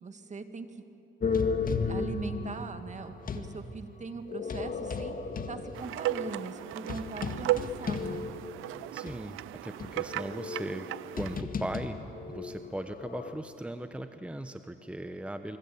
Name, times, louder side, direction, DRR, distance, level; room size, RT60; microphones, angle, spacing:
voice 1, 0.0-0.7 1.8-5.2 5.5-8.3, right 4 dB, 35° right, 8 dB, 2.0 m, -41 dB
sound 1, 1.2-3.5 4.3-8.7 9.1-9.2 9.8-13.3, left 4 dB, 45° left, 1.9 m, -34 dB
sound 2, 5.7-11.4, right 13 dB, 85° right, 0.5 m, -35 dB
voice 2, 8.9-10.9 11.1-12.0 12.3-15.6, right 1 dB, 5° right, 8 dB, 1.0 m, -38 dB
25.0 x 24.0 x 8.6 m, 3.0 s
cardioid pair, 90°, 20 cm